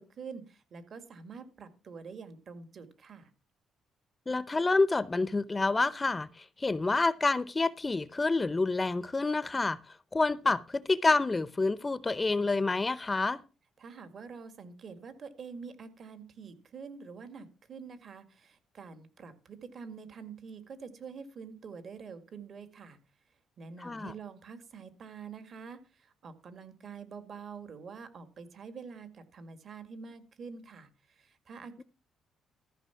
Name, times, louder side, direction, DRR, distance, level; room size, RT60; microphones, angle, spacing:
voice 1, 0.0-3.3 13.8-23.0 23.6-31.8, right 5 dB, 55° right, 1.9 m, -46 dB
voice 2, 4.3-9.8 10.1-13.4 23.8-24.1, left 3 dB, 25° left, 0.6 m, -28 dB
14.0 x 5.7 x 5.8 m
cardioid pair, 90°, 0 cm